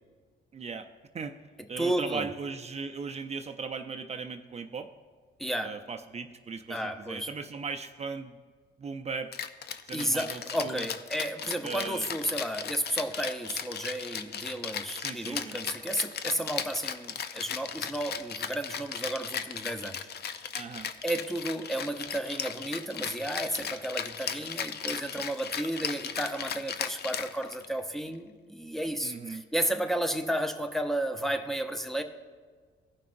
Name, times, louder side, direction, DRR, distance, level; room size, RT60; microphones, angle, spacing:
voice 1, 0.5-0.9 1.1-1.4 1.7-4.9 5.6-8.4 8.8-9.3 9.9-10.9 11.6-12.1 15.0-15.6 20.5-20.9 29.0-29.4, right 5 dB, 35° right, 6 dB, 0.5 m, -38 dB
voice 2, 1.8-2.3 5.4-5.7 6.7-7.3 9.9-20.0 21.0-32.0, right 1 dB, ahead, 7 dB, 0.7 m, -32 dB
Rattle (instrument), 9.3-27.8, left 8 dB, 55° left, 0.5 m, -36 dB
16.0 x 5.7 x 2.6 m, 1.5 s
cardioid pair, 90°, 20 cm